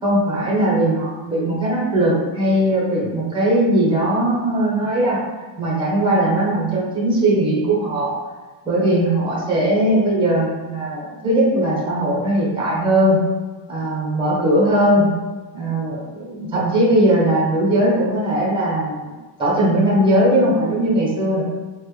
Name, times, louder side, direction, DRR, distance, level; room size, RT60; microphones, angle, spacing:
voice 1, 0.0-5.2 5.6-8.1 8.6-13.2 13.7-15.1 15.5-19.1 19.4-21.4, right 1 dB, 10° right, -5 dB, 1.2 m, -19 dB
4.4 x 2.6 x 3.3 m, 1.3 s
cardioid pair, 140°, 46 cm